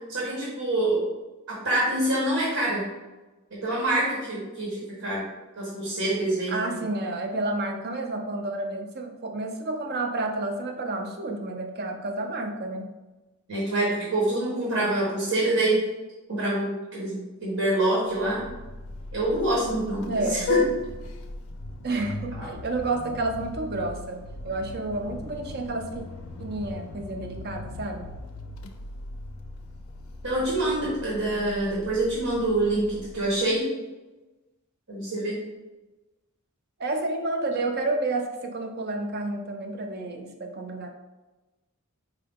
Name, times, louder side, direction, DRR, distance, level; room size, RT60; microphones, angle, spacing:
voice 1, 0.1-1.1 1.5-2.8 3.6-5.2 5.6-6.8 13.5-15.8 16.3-18.4 19.1-20.6 30.2-33.6 34.9-35.3, right 1 dB, 80° right, -5 dB, 1.1 m, -26 dB
voice 2, 6.5-12.9 20.1-20.5 21.8-24.2 24.4-26.0 26.4-28.1 36.8-40.9, right 2 dB, 50° right, 4 dB, 0.5 m, -30 dB
Vehicle horn car horn honking, 18.1-33.5, left 3 dB, 80° left, 0.4 m, -37 dB
4.7 x 2.2 x 3.5 m, 1.1 s
head